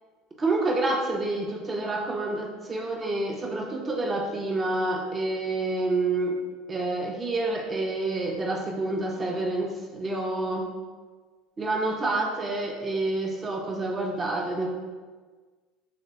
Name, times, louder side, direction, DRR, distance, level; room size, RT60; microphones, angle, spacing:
voice 1, 0.4-6.4 6.7-10.7 11.6-14.7, right 2 dB, 30° right, 0 dB, 0.5 m, -28 dB
3.3 x 2.1 x 4.0 m, 1.4 s
hypercardioid pair, 75°, 0 cm